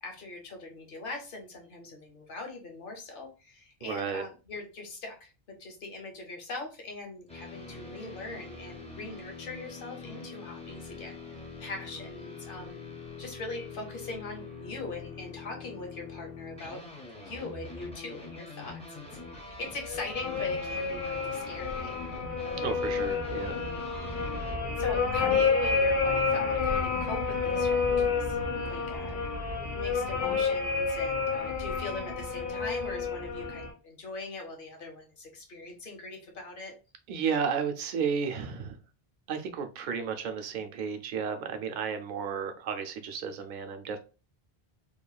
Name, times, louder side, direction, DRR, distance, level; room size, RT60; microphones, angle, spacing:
voice 1, 0.0-5.3 5.6-12.8 13.2-16.8 17.2-18.8 19.3-21.9 24.8-28.4 28.7-29.2 29.7-36.7, left 2 dB, 60° left, 3 dB, 1.0 m, -41 dB
voice 2, 3.8-4.2 22.6-23.5 28.6-28.7 37.1-38.8 39.3-44.0, right 6 dB, 60° right, 6 dB, 0.6 m, -33 dB
sound 1, 7.3-24.6, left 3 dB, 10° left, 0.4 m, -44 dB
sound 2, 19.3-33.7, left 4 dB, 85° left, 1.5 m, -29 dB
2.9 x 2.2 x 2.3 m, 0.32 s
omnidirectional pair, 1.0 m